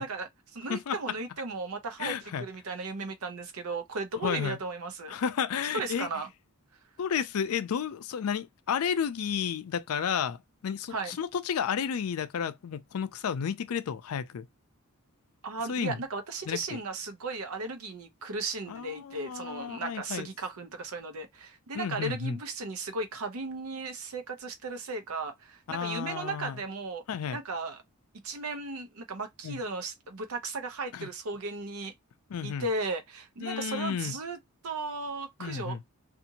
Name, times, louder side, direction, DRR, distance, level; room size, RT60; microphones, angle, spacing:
voice 1, 0.0-5.2 5.7-6.3 10.9-11.2 15.4-27.0 27.3-27.8 28.2-31.9 32.4-34.4 34.6-35.9, right 3 dB, 75° right, 0.7 m, -36 dB
voice 2, 2.0-2.4 4.2-4.6 5.1-6.1 7.0-14.5 15.7-16.0 16.5-16.6 18.7-20.3 21.7-22.4 25.7-26.6 27.1-27.4 29.4-29.6 30.9-31.1 32.3-32.6 33.4-34.2 35.4-35.8, left 7 dB, 75° left, 0.4 m, -32 dB
2.6 x 2.5 x 2.8 m
head